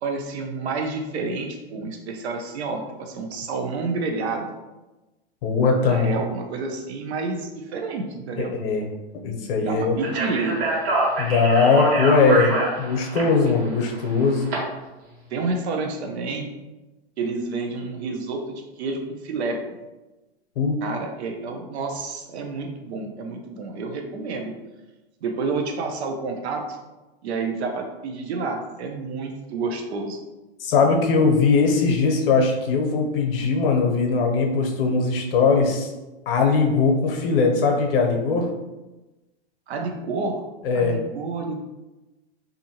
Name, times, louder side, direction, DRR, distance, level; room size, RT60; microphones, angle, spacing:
voice 1, 0.0-4.5 5.8-8.5 9.6-10.7 15.3-16.5 17.2-19.6 20.8-24.5 25.2-26.8 27.2-30.2 39.7-40.4 40.7-41.7, right 3 dB, 80° right, 3 dB, 0.6 m, -29 dB
voice 2, 5.4-6.2 8.4-8.9 9.2-10.0 11.2-12.5 12.8-14.5 20.6-20.8 30.6-35.9 36.3-38.5 40.6-41.0, left 4 dB, 60° left, 2 dB, 0.7 m, -20 dB
Speech, 10.0-14.6, right 2 dB, 65° right, 1.2 m, -26 dB
2.6 x 2.6 x 2.8 m, 1.1 s
supercardioid pair, 150°, 32 cm